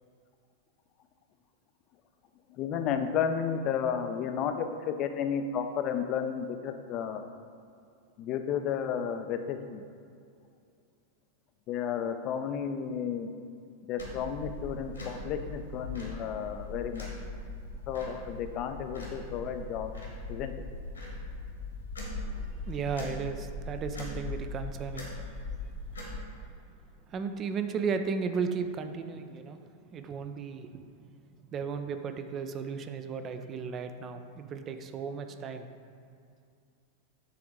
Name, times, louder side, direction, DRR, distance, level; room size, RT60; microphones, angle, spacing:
voice 1, 2.5-7.3 8.2-9.9 11.7-13.3 13.9-17.1 17.9-19.9 20.3-20.5, left 7 dB, 35° left, 8 dB, 0.4 m, -32 dB
sound 1, 14.0-26.2, left 2 dB, 75° left, 1.2 m, -40 dB
voice 2, 22.6-25.1 27.1-29.6 29.9-30.9 31.5-35.7, right 5 dB, 30° right, 8 dB, 0.4 m, -35 dB
7.6 x 3.5 x 3.6 m, 2.4 s
figure-of-eight pair, 90°, 0 cm